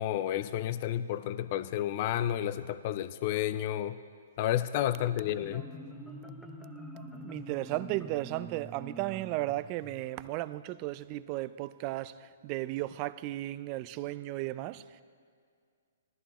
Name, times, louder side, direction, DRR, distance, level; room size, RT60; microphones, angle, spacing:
voice 1, 0.0-4.0 4.4-5.7, left 12 dB, 45° left, 0.4 m, -31 dB
Marimba xylophone, 4.8-10.4, right 1 dB, ahead, 1.0 m, -46 dB
voice 2, 7.1-15.0, right 17 dB, 35° right, 0.4 m, -35 dB
19.5 x 14.0 x 3.0 m
hypercardioid pair, 135°, 0 cm